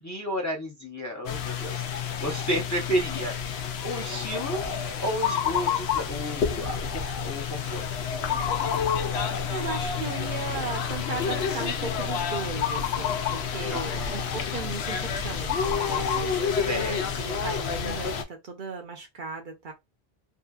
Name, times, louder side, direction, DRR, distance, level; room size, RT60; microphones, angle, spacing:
voice 1, 0.0-4.6 5.0-7.9 13.7-14.3 16.7-17.2, equal, 20° left, 0.6 m, -32 dB
sound 1, 1.3-18.2, left 7 dB, 85° left, 0.8 m, -29 dB
voice 2, 9.1-19.7, right 5 dB, 60° right, 0.8 m, -37 dB
2.7 x 2.6 x 2.3 m
omnidirectional pair, 1.0 m